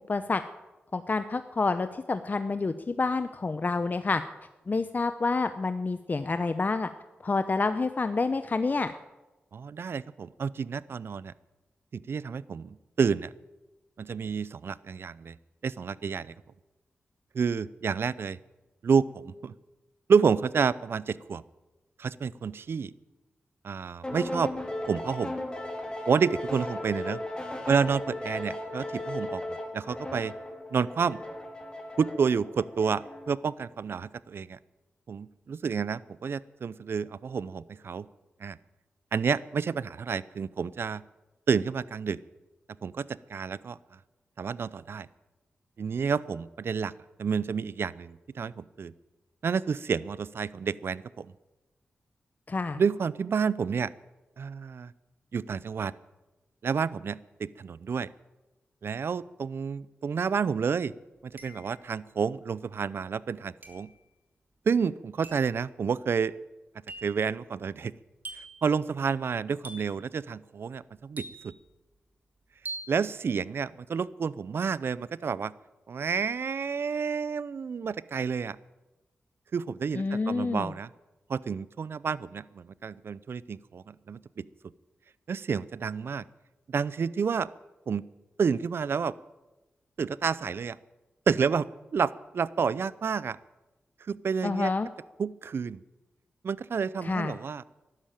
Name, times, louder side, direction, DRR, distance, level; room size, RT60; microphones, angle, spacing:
voice 1, 0.1-0.4 0.9-4.2 4.7-6.9 7.2-8.9 52.5-52.8 79.9-80.7 94.4-94.9 97.0-97.4, left 3 dB, 45° left, 10 dB, 0.8 m, -28 dB
voice 2, 9.5-11.3 11.9-13.3 14.0-15.3 15.6-16.3 17.3-18.4 18.8-19.5 20.1-21.4 22.0-22.9 23.6-24.5 24.9-25.3 26.1-27.2 27.7-30.3 30.7-31.2 32.0-34.6 35.1-38.1 38.4-38.6 39.1-41.0 41.5-42.2 42.8-43.8 44.4-45.1 45.8-46.9 47.2-48.9 49.4-51.3 52.8-53.9 54.4-54.9 55.3-55.9 56.6-58.1 58.8-60.9 61.2-63.9 64.7-66.3 67.0-67.9 68.6-71.5 72.9-75.5 75.9-78.6 79.5-80.9 81.3-84.4 85.3-86.2 86.7-87.5 87.9-88.0 88.4-89.1 90.0-90.8 91.3-91.7 91.9-93.4 94.1-94.7 95.2-95.8 96.4-97.6, right 6 dB, 65° right, 19 dB, 0.6 m, -29 dB
sound 1, 24.0-33.4, left 1 dB, 20° left, 3.9 m, -36 dB
sound 2, 60.2-60.3 61.4-61.9 63.6-64.0 65.2-65.6 66.9-67.2 68.2-68.7 69.6-70.1 71.2-71.7 72.7-73.0, right 2 dB, 50° right, 2.6 m, -43 dB
13.0 x 11.5 x 9.0 m, 1.1 s
cardioid pair, 50°, 4 cm